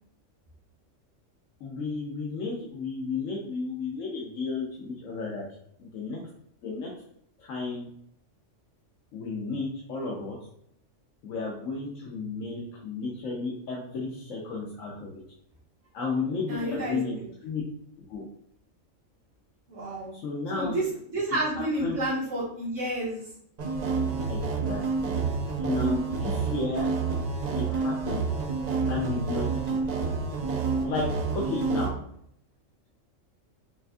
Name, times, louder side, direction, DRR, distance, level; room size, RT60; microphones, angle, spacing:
voice 1, 1.6-5.4 5.8-6.2 6.6-6.9 7.4-7.9 9.1-10.4 11.2-15.1 15.9-17.2 17.4-17.6 18.1-18.2 20.1-20.8 21.5-22.0 24.3-24.4 24.7-25.1 25.6-26.9 27.6-28.2 28.9-29.8 30.8-31.1 31.3-31.9, left 4 dB, 85° left, -3 dB, 1.2 m, -33 dB
voice 2, 16.5-17.2 19.7-20.1 20.5-23.3 31.7-32.0, right 1 dB, 70° right, -8 dB, 1.5 m, -30 dB
sound 1, 23.6-31.9, right 4 dB, 50° right, 0.5 m, -28 dB
5.9 x 2.6 x 2.3 m, 0.69 s
omnidirectional pair, 1.3 m